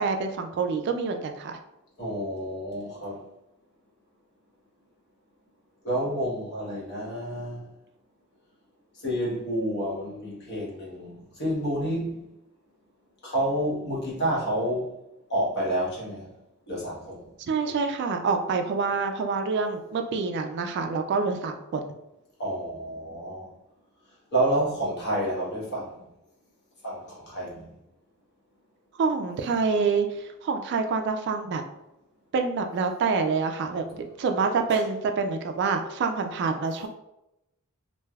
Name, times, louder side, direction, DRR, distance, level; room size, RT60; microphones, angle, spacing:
voice 1, 0.0-1.6 17.4-21.8 29.0-31.6 32.3-33.8 34.2-36.9, right 4 dB, 50° right, 0.3 m, -26 dB
voice 2, 2.0-3.2 5.8-7.7 9.0-12.2 13.2-14.9 15.3-16.3 16.7-17.2 17.7-17.8 22.4-23.5 24.3-26.0 26.8-27.7 33.7-34.1 34.7-34.8, right 1 dB, 50° left, 1.1 m, -29 dB
3.2 x 2.6 x 2.2 m
head